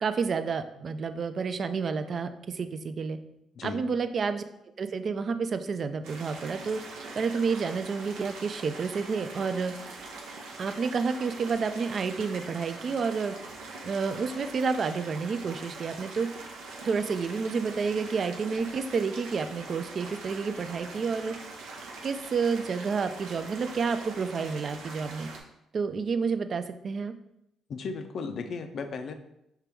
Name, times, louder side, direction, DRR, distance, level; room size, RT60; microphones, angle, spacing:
voice 1, 0.0-3.2 3.6-4.4 4.8-6.8 7.1-9.7 10.6-13.3 13.8-16.3 16.8-21.3 22.0-25.3 25.7-27.1, right 5 dB, 50° right, 10 dB, 0.3 m, -30 dB
voice 2, 3.5-3.9 27.7-29.1, left 4 dB, 60° left, 8 dB, 0.4 m, -35 dB
sound 1, 6.0-25.4, right 3 dB, 90° right, 0.7 m, -43 dB
4.5 x 2.9 x 3.5 m, 0.82 s
cardioid pair, 90°, 0 cm